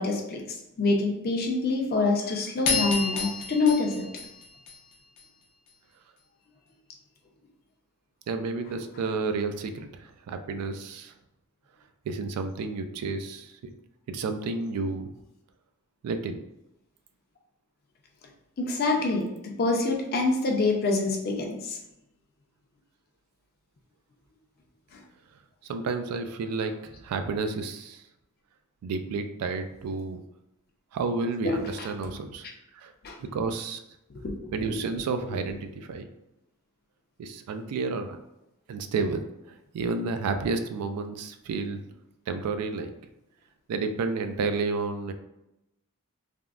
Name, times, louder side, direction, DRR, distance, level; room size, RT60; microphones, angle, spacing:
voice 1, 0.0-4.1 18.6-21.8 24.9-25.0 31.4-31.9 33.0-33.2 34.1-34.3 34.7-34.8, left 3 dB, 45° left, 1 dB, 0.5 m, -26 dB
sound 1, 2.7-5.2, left 4 dB, 85° left, 0.7 m, -30 dB
voice 2, 8.3-11.1 12.1-13.7 14.1-15.1 16.0-16.4 25.7-26.7 27.0-28.0 28.8-30.2 30.9-32.4 32.7-32.9 33.3-33.8 34.5-36.1 37.2-38.2 38.7-39.2 39.5-41.8 42.3-42.9 43.7-45.1, right 4 dB, 85° right, 8 dB, 0.3 m, -31 dB
3.4 x 2.0 x 2.3 m, 0.88 s
head